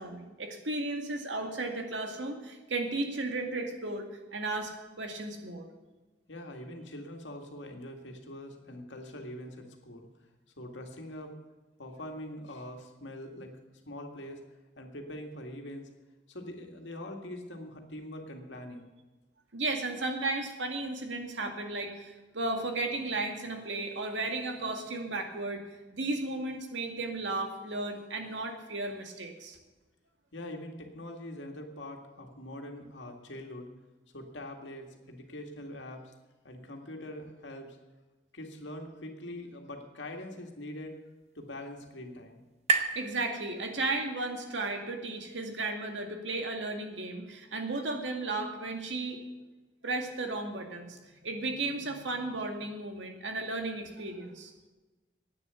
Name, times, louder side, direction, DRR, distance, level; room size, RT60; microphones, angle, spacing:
voice 1, 0.0-4.1 4.3-4.7 5.0-5.7 19.5-25.6 25.9-29.6 43.0-49.2 49.8-54.5, right 2 dB, 85° right, 4 dB, 2.0 m, -34 dB
voice 2, 6.3-10.1 10.6-11.3 11.8-13.5 13.9-14.4 14.8-15.9 16.3-18.9 30.3-33.7 34.1-36.1 36.4-37.8 38.3-41.0 41.4-42.4, left 1 dB, 85° left, 3 dB, 2.0 m, -43 dB
sound 1, 40.4-44.1, right 4 dB, 35° right, 1.0 m, -35 dB
10.5 x 9.3 x 8.2 m, 1.2 s
head